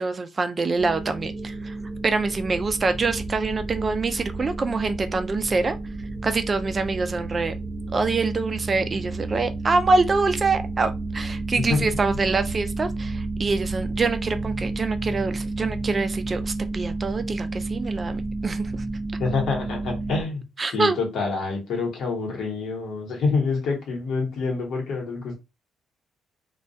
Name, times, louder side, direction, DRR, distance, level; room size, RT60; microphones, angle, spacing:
voice 1, 0.0-1.7 2.0-5.7 6.2-7.5 7.9-18.8 20.6-21.0, right 3 dB, 35° right, 0.3 m, -25 dB
sound 1, 0.8-20.2, right 3 dB, 20° right, 0.8 m, -31 dB
voice 2, 19.2-25.3, left 4 dB, 75° left, 1.0 m, -27 dB
2.2 x 2.1 x 2.6 m
cardioid pair, 90°, 0 cm